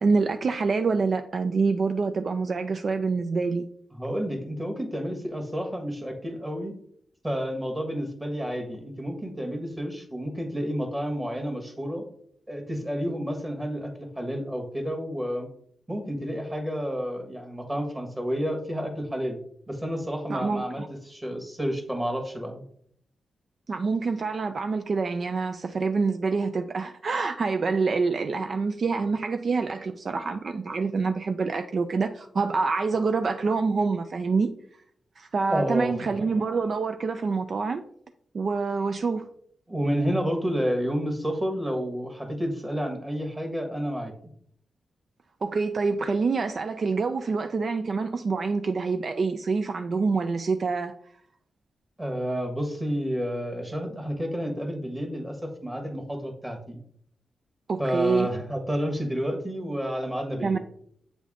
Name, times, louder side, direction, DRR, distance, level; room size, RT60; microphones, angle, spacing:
voice 1, 0.0-3.7 20.3-20.9 23.7-34.5 35.2-37.8 38.3-39.3 45.4-50.9 57.7-58.3 60.4-60.6, right 4 dB, 55° right, 0.3 m, -26 dB
voice 2, 3.9-6.7 7.2-12.0 12.5-15.5 15.9-19.4 19.7-22.6 35.5-36.2 39.7-44.1 52.0-56.8 57.8-60.6, equal, 15° right, 1.5 m, -30 dB
7.4 x 3.5 x 3.6 m
cardioid pair, 70°, 0 cm